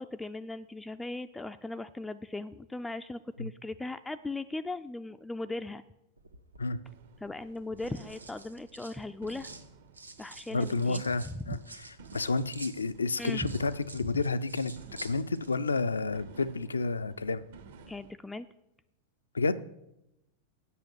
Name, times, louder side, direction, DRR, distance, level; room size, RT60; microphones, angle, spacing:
voice 1, 0.0-5.8 7.2-9.5 10.2-11.6 13.2-13.5 17.9-18.5, left 2 dB, 10° left, 10 dB, 0.3 m, -38 dB
sound 1, 6.2-6.7 7.6-9.7 9.9-15.8 16.1-16.4, right 3 dB, 80° right, 1.0 m, -49 dB
sound 2, 6.8-18.1, right 5 dB, 60° right, 1.0 m, -54 dB
voice 2, 10.5-11.6 12.1-14.7 15.0-17.4 19.3-19.6, left 3 dB, 75° left, 14 dB, 0.5 m, -30 dB
8.4 x 6.4 x 7.9 m, 0.86 s
figure-of-eight pair, 90°, 0 cm